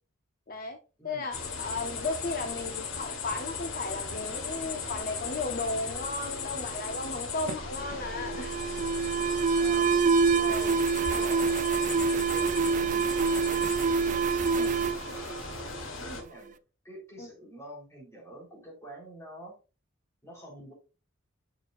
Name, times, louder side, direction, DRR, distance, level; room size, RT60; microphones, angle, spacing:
voice 1, 0.5-0.8 1.0-8.5 9.0-9.2 10.4-10.8 14.6-14.7 17.2-17.3, left 3 dB, 45° left, 5 dB, 0.7 m, -35 dB
voice 2, 1.0-1.3 9.6-10.0 10.3-10.8 11.1-13.8 14.4-14.9 16.0-16.6 16.8-19.6 20.2-20.7, right 1 dB, 15° left, -3 dB, 3.7 m, -46 dB
sound 1, 1.3-16.2, left 4 dB, 80° left, 1.4 m, -37 dB
Alarm, 7.5-16.1, right 5 dB, 40° right, 0.3 m, -26 dB
7.6 x 6.9 x 2.5 m, 0.32 s
head